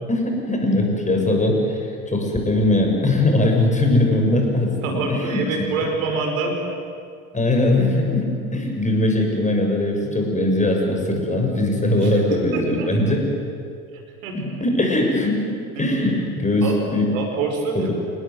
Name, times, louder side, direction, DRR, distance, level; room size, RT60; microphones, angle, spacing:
voice 1, 0.1-5.7 7.3-13.3 14.3-17.1 17.8-17.9, left 1 dB, 15° left, 2 dB, 7.2 m, -20 dB
voice 2, 4.8-6.6 11.9-12.9 13.9-14.4 15.8-15.9 16.6-16.8 17.1-17.9, right 4 dB, 70° right, 3 dB, 5.5 m, -26 dB
28.5 x 20.0 x 9.6 m, 2.3 s
figure-of-eight pair, 70°, 43 cm